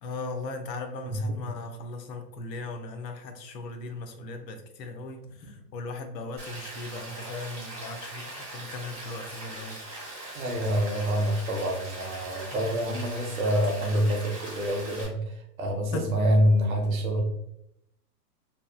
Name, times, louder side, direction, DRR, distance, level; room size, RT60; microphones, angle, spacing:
voice 1, 0.0-9.8 12.5-12.8 15.9-16.1, left 2 dB, 80° left, 6 dB, 0.7 m, -38 dB
Rain, 6.4-15.0, right 1 dB, 25° right, 1.1 m, -41 dB
voice 2, 10.3-17.2, equal, 55° right, 2 dB, 0.7 m, -26 dB
2.9 x 2.4 x 2.2 m, 0.79 s
hypercardioid pair, 175°, 49 cm